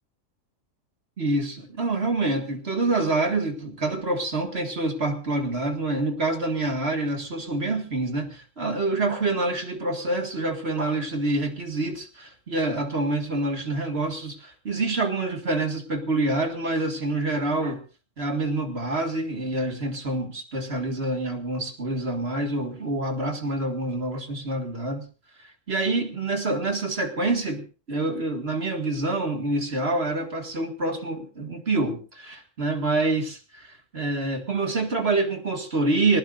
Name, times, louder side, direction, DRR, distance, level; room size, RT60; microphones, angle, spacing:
voice 1, 1.2-17.8 18.2-25.1 25.4-36.2, right 2 dB, 50° right, 4 dB, 2.1 m, -27 dB
20.0 x 19.5 x 2.5 m, 0.35 s
omnidirectional pair, 1.4 m